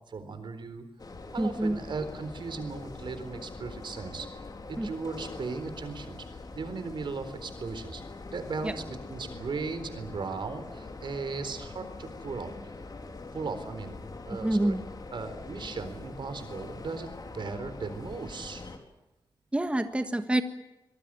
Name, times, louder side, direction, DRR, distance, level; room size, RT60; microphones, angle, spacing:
voice 1, 0.1-0.8 1.3-8.0 8.3-8.8 9.1-12.5 13.3-14.0 14.2-14.8 15.1-18.6, right 4 dB, 70° right, 10 dB, 4.1 m, -37 dB
sound 1, 1.0-18.8, left 3 dB, 50° left, 3.9 m, -43 dB
voice 2, 1.4-1.8 4.8-4.9 8.6-8.7 14.4-14.8 19.5-20.4, right 1 dB, 15° right, 8 dB, 1.5 m, -27 dB
24.5 x 21.5 x 9.0 m, 0.98 s
wide cardioid pair, 110°, 8 cm